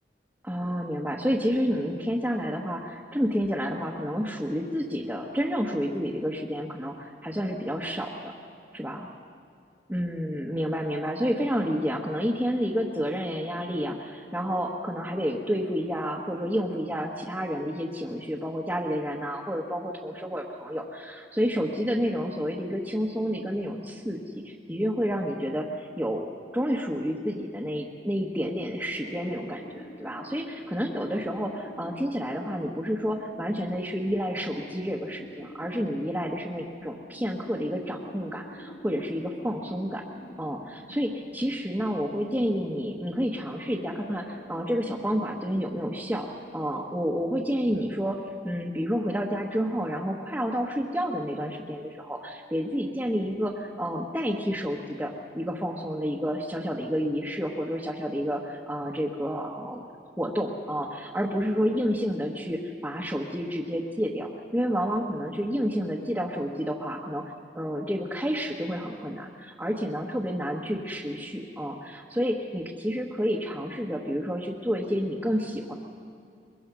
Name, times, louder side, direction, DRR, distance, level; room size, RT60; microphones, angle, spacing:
voice 1, 0.4-8.3 8.7-9.1 9.9-26.3 26.5-40.0 40.4-46.3 46.5-48.2 48.4-59.8 60.2-67.2 67.5-75.7, equal, 10° right, -4 dB, 1.2 m, -30 dB
sound 1, 29.0-46.8, equal, 50° left, 1.9 m, -48 dB
23.5 x 22.0 x 6.2 m, 2.3 s
head